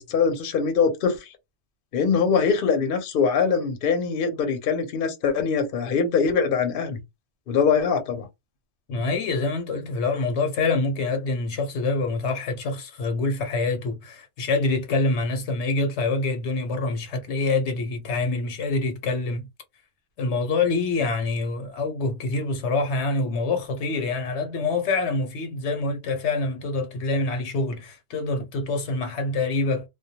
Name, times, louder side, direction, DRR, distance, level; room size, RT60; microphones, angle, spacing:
voice 1, 0.0-1.3 1.9-7.0 7.5-8.3, left 6 dB, 60° left, 0.8 m, -23 dB
voice 2, 8.9-19.5 20.2-29.9, left 3 dB, 80° left, 0.9 m, -26 dB
2.2 x 2.2 x 2.7 m
omnidirectional pair, 1.1 m